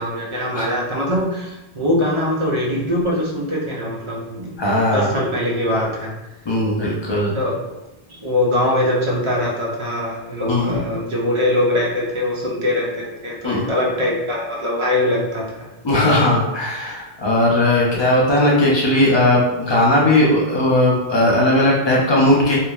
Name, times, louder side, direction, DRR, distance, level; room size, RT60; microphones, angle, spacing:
voice 1, 0.0-4.6 4.9-6.1 7.3-7.8 8.2-15.7, left 1 dB, 40° right, -3 dB, 0.4 m, -22 dB
voice 2, 4.6-5.1 6.4-7.4 10.5-10.8 13.4-13.7 15.8-22.6, left 1 dB, 35° left, -4 dB, 0.5 m, -17 dB
2.9 x 2.0 x 2.3 m, 0.95 s
omnidirectional pair, 1.0 m